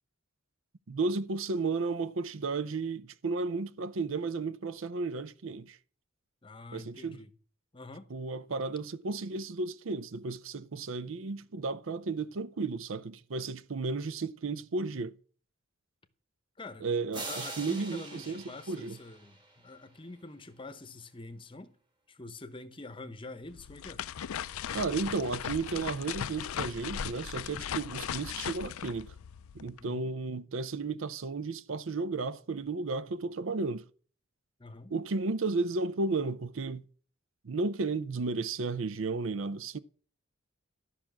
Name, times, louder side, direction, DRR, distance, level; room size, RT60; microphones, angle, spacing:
voice 1, 0.9-5.8 6.7-7.2 8.1-15.2 16.8-19.0 24.7-29.1 29.5-33.8 34.9-36.8 37.4-39.8, right 3 dB, 70° right, 0.6 m, -33 dB
voice 2, 6.4-7.3 7.7-8.1 16.6-16.9 17.2-21.8 22.1-24.0 29.8-30.1 34.6-34.9, left 2 dB, 25° left, 0.8 m, -46 dB
sound 1, 17.1-20.0, right 2 dB, 20° right, 1.8 m, -43 dB
sound 2, 23.4-29.8, left 9 dB, 90° left, 0.4 m, -38 dB
12.5 x 5.9 x 6.0 m
head